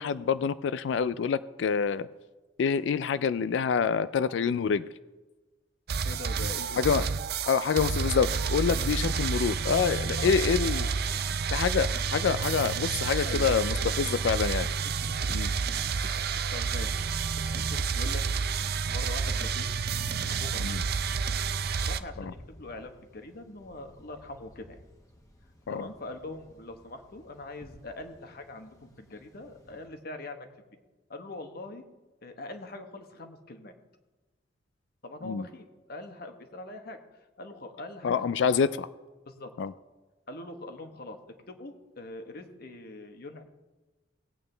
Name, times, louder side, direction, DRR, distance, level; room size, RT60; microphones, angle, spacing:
voice 1, 0.0-2.1 2.6-4.9 6.8-7.1 7.5-10.9 11.5-14.7 15.3-15.5 20.6-20.8 22.2-22.3 25.7-25.8 35.2-35.5 38.0-38.9 39.6-39.7, left 6 dB, 75° left, 15 dB, 0.3 m, -27 dB
sound 1, 5.9-22.0, right 5 dB, 60° right, 0.5 m, -30 dB
voice 2, 6.0-6.8 10.2-11.5 12.9-14.3 15.0-15.3 16.0-19.7 20.4-20.6 21.8-24.8 25.7-30.5 31.1-31.8 32.2-33.7 35.0-37.0 37.4-38.3 39.2-39.5 40.3-41.2 41.5-43.4, left 2 dB, 55° left, 6 dB, 1.2 m, -43 dB
sound 2, 19.6-29.9, equal, 20° left, 1.2 m, -52 dB
18.0 x 8.8 x 3.3 m, 1.2 s
head